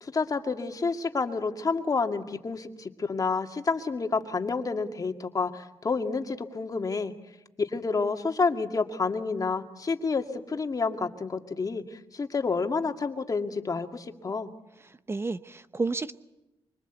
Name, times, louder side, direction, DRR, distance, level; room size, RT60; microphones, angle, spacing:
voice 1, 0.0-7.1 7.6-14.5, left 4 dB, 40° left, 5 dB, 2.2 m, -29 dB
voice 2, 14.8-16.1, right 3 dB, 25° right, 12 dB, 0.9 m, -31 dB
25.0 x 25.0 x 8.1 m, 0.94 s
cardioid pair, 85°, 10 cm